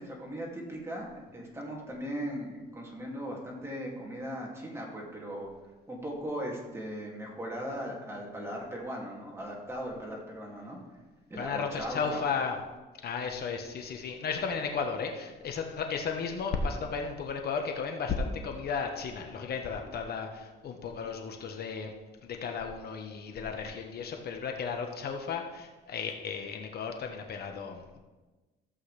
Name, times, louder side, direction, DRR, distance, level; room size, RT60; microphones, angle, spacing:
voice 1, 0.0-5.5 5.9-10.8 11.3-12.3, equal, 15° right, -3 dB, 2.4 m, -38 dB
voice 2, 11.4-12.6 13.0-21.9 22.2-28.0, left 5 dB, 60° left, 4 dB, 1.1 m, -34 dB
14.5 x 7.8 x 3.3 m, 1.2 s
cardioid pair, 120°, 18 cm